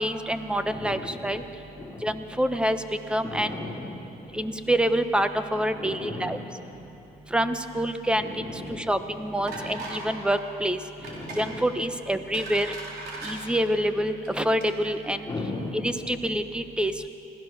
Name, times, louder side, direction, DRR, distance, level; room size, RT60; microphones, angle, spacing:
voice 1, 0.0-1.4 2.0-2.8 3.1-3.5 4.3-6.4 7.3-10.8 11.4-12.7 13.2-15.2 15.7-16.9, right 1 dB, 5° right, 9 dB, 1.0 m, -26 dB
voice 2, 0.6-1.3 1.7-2.1 3.2-4.5 5.7-6.5 6.7-7.0 8.2-8.9 9.4-9.8 11.0-11.6 15.3-16.3, left 2 dB, 15° left, -4 dB, 4.5 m, -37 dB
sound 1, 9.5-10.0 10.3-10.5 11.0-11.5 12.0-13.4 14.1-14.3 14.6-14.7, right 2 dB, 75° right, 4.5 m, -38 dB
25.5 x 16.0 x 6.5 m, 2.7 s
cardioid pair, 110°, 17 cm